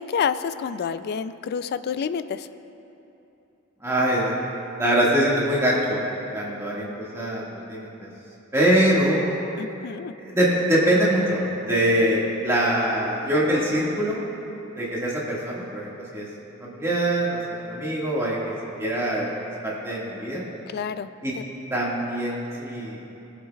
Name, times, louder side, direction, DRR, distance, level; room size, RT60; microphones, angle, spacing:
voice 1, 0.0-2.5 9.6-10.1 20.7-21.1, left 7 dB, 50° left, 13 dB, 0.3 m, -28 dB
voice 2, 3.8-4.3 4.8-6.0 6.3-8.1 8.5-9.3 10.2-14.2 14.8-16.3 16.6-19.3 19.6-20.4 21.2-21.3 21.7-23.0, right 1 dB, 15° right, -6 dB, 1.8 m, -23 dB
20.5 x 7.4 x 2.4 m, 2.9 s
head